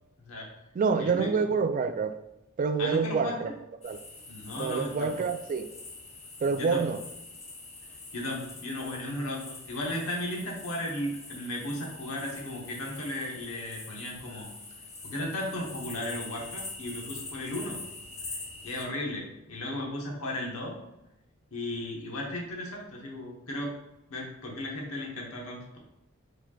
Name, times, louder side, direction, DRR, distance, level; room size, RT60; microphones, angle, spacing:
voice 1, 0.2-0.5 1.0-1.5 2.8-3.5 4.3-5.3 6.5-6.9 8.1-14.5 15.0-17.8 18.2-18.4 18.6-20.8 21.5-23.8 24.1-25.8, left 1 dB, 85° left, 1.0 m, -35 dB
voice 2, 0.8-2.2 2.6-3.5 3.8-4.0 4.6-5.7 6.4-7.0, right 5 dB, 40° right, 0.3 m, -27 dB
sound 1, 3.8-18.9, left 3 dB, 30° left, 0.8 m, -44 dB
4.9 x 4.4 x 2.3 m
head